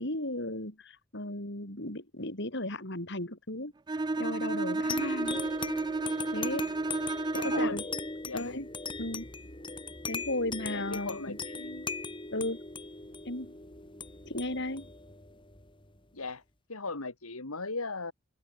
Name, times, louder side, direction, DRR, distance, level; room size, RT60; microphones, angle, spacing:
voice 1, 0.0-5.4 6.3-6.7 7.3-7.8 8.3-8.7 9.0-9.3 10.1-11.4 12.3-12.6 13.3-13.5 14.2-14.9, left 1 dB, 55° left, 5.6 m, -35 dB
Bowed string instrument, 3.9-8.0, right 2 dB, 20° right, 0.4 m, -31 dB
sound 1, 4.9-16.0, left 4 dB, 25° left, 4.4 m, -40 dB
voice 2, 7.4-7.8 8.3-8.5 10.7-11.9 16.1-16.4 16.7-18.1, left 3 dB, 85° left, 2.5 m, -38 dB
open air
head